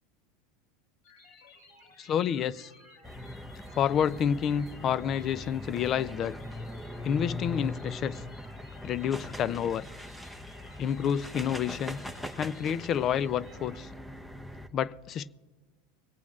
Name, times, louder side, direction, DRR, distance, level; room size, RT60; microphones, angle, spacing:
sound 1, 1.0-13.9, left 3 dB, 65° left, 3.0 m, -56 dB
voice 1, 2.0-2.7 3.8-6.4 7.0-8.2 8.8-9.8 10.8-12.0 12.4-13.9 14.7-15.3, left 8 dB, 40° left, 0.4 m, -29 dB
sound 2, 3.0-14.7, left 1 dB, 5° left, 0.8 m, -41 dB
24.5 x 8.4 x 2.4 m
hypercardioid pair, 105°, 0 cm